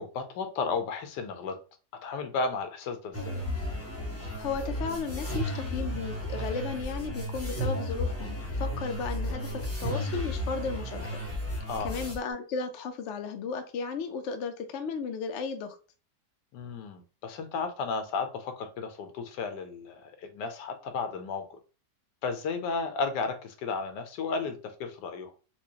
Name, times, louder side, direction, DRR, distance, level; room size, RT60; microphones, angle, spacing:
voice 1, 0.0-1.6 2.0-3.4 11.7-11.9 16.5-21.4 22.2-25.3, left 4 dB, 80° left, 1.3 m, -33 dB
sound 1, 3.1-12.2, equal, 15° left, 0.5 m, -33 dB
voice 2, 4.4-11.0 11.8-15.8, left 5 dB, 65° left, 0.7 m, -34 dB
4.4 x 2.4 x 2.8 m
omnidirectional pair, 1.8 m